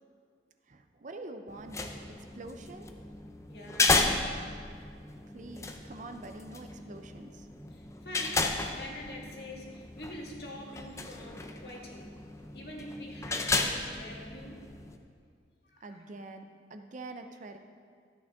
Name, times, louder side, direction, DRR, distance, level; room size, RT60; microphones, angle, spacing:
voice 1, 0.7-2.9 5.3-7.5 15.8-16.4 16.7-17.6, right 2 dB, 45° right, 6 dB, 0.6 m, -45 dB
sound 1, 1.5-15.0, left 3 dB, 15° left, 0.5 m, -34 dB
voice 2, 3.5-4.2 7.7-12.2 12.5-14.7 15.6-16.0, left 1 dB, 60° left, -1 dB, 1.7 m, -46 dB
13.0 x 8.9 x 3.6 m, 2.1 s
head